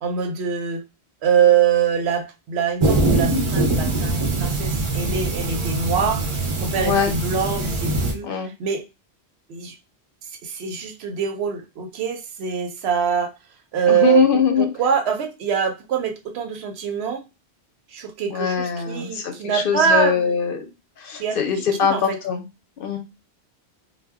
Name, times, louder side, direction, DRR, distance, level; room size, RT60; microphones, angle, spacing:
voice 1, 0.0-0.8 1.2-6.3 6.6-8.8 9.5-9.8 10.4-13.3 13.7-14.2 14.6-17.2 17.9-20.3 21.2-21.4 21.8-22.2, right 7 dB, 75° right, 0.8 m, -23 dB
sound 1, 2.8-8.1, right 2 dB, 40° right, 0.5 m, -22 dB
voice 2, 6.8-7.1 8.2-8.5 13.9-14.7 18.3-20.6 21.0-22.4 22.8-23.0, left 7 dB, 65° left, 0.7 m, -22 dB
2.1 x 2.0 x 3.4 m
omnidirectional pair, 1.1 m